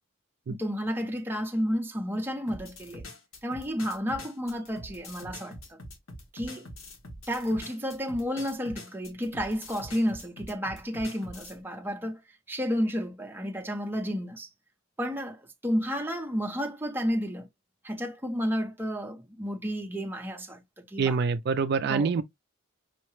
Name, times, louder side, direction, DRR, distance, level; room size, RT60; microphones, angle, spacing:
voice 1, 0.5-3.0 3.4-5.8 6.3-6.7 7.3-12.2 12.5-14.5 15.0-17.5 17.8-21.2 21.9-22.2, equal, 10° right, 0.6 m, -31 dB
sound 1, 2.5-11.6, left 1 dB, 85° left, 1.2 m, -44 dB
voice 2, 21.0-22.2, right 5 dB, 55° right, 0.4 m, -25 dB
5.6 x 2.1 x 3.0 m
head